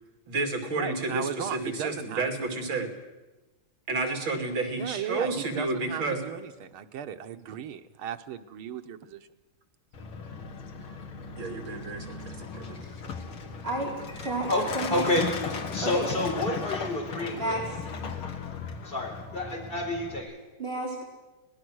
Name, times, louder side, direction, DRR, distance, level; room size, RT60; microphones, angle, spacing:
voice 1, 0.3-2.9 3.9-6.2 11.4-12.8, right 3 dB, 70° right, 4 dB, 3.4 m, -31 dB
voice 2, 0.8-2.2 4.8-9.3 20.2-20.3, right 9 dB, 90° right, 7 dB, 1.8 m, -36 dB
Truck, 9.9-20.2, left 5 dB, 85° left, 2.5 m, -36 dB
voice 3, 13.6-13.9 14.2-15.1 15.8-16.1 17.4-17.7 20.6-21.0, right 1 dB, 25° right, -2 dB, 4.0 m, -31 dB
voice 4, 14.9-15.3 15.7-17.6 18.8-20.3, left 1 dB, 25° left, 0 dB, 4.3 m, -29 dB
24.5 x 18.5 x 6.3 m, 1.2 s
omnidirectional pair, 2.2 m